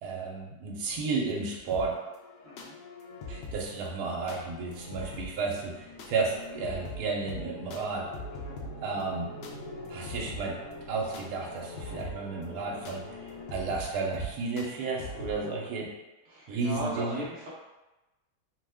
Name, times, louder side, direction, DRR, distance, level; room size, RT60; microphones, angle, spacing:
voice 1, 0.0-2.0 3.3-8.1 8.8-9.3 9.9-10.6 10.9-13.2 13.5-15.9 16.5-17.2, right 4 dB, 80° right, -1 dB, 1.1 m, -32 dB
sound 1, 1.7-15.4, left 2 dB, 80° left, 0.6 m, -44 dB
voice 2, 2.4-2.7 8.4-8.8 16.2-17.5, equal, 50° right, -5 dB, 0.8 m, -38 dB
sound 2, 3.2-13.4, equal, 60° left, 1.3 m, -47 dB
2.8 x 2.1 x 3.4 m, 1.0 s
omnidirectional pair, 1.7 m